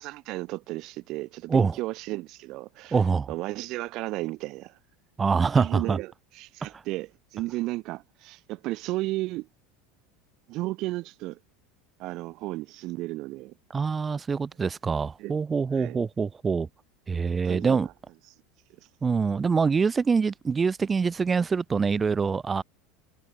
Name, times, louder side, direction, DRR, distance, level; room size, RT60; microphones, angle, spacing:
voice 1, 0.0-3.0 3.3-4.8 5.6-9.5 10.5-11.4 12.0-13.5 15.2-15.3 15.7-16.0 17.4-17.9, right 19 dB, 50° right, 3.2 m, -34 dB
voice 2, 2.9-3.3 5.2-6.0 13.7-16.7 17.1-17.9 19.0-22.6, right 5 dB, 20° right, 3.7 m, -25 dB
figure-of-eight pair, 75°, 0 cm